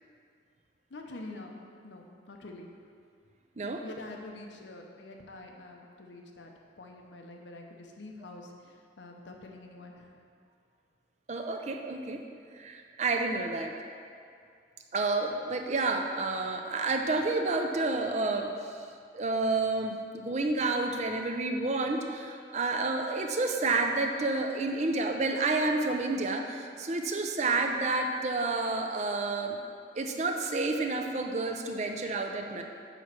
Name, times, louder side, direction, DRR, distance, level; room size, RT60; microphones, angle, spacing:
voice 1, 0.9-1.6 1.8-2.9 3.8-10.2, left 2 dB, 80° left, 1 dB, 0.8 m, -46 dB
voice 2, 11.3-12.2 12.6-13.7 14.9-18.8 19.1-29.6 30.0-32.6, right 3 dB, 40° right, 3 dB, 0.5 m, -30 dB
9.0 x 3.1 x 5.9 m, 2.3 s
head